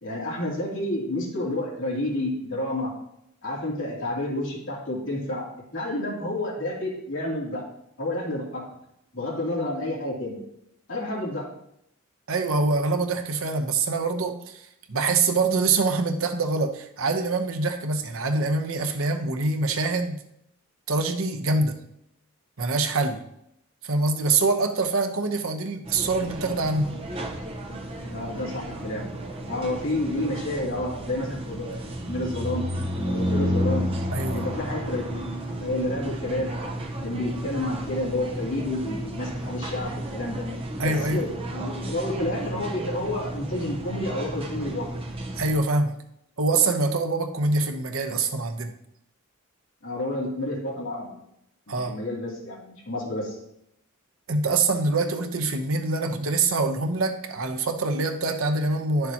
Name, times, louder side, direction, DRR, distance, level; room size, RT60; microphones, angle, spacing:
voice 1, 0.0-2.9 3.4-5.5 5.7-7.6 8.0-8.6 9.1-10.4 10.9-11.5 28.0-29.1 29.5-32.7 33.1-33.9 34.3-35.2 35.6-36.5 37.0-40.5 40.8-44.9 49.8-51.1 51.7-53.4, left 1 dB, 60° left, -4 dB, 2.8 m, -30 dB
voice 2, 12.3-20.2 20.9-21.8 22.6-23.2 23.8-27.0 34.1-34.4 40.8-41.3 45.4-46.0 46.4-48.7 51.7-51.9 54.3-59.1, right 3 dB, 70° right, 5 dB, 0.9 m, -25 dB
sound 1, 25.9-45.6, equal, 25° right, 1.0 m, -32 dB
11.0 x 6.7 x 2.9 m, 0.78 s
head